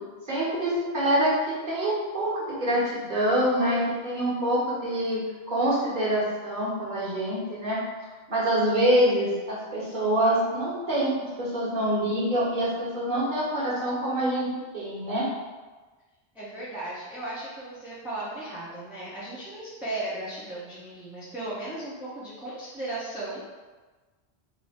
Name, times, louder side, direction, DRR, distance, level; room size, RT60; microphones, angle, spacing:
voice 1, 0.3-5.2 5.5-7.8 8.3-14.5 14.7-15.2, right 1 dB, 50° right, -9 dB, 1.6 m, -25 dB
voice 2, 16.3-23.6, right 2 dB, ahead, -10 dB, 0.7 m, -36 dB
3.1 x 2.7 x 4.1 m, 1.3 s
omnidirectional pair, 1.0 m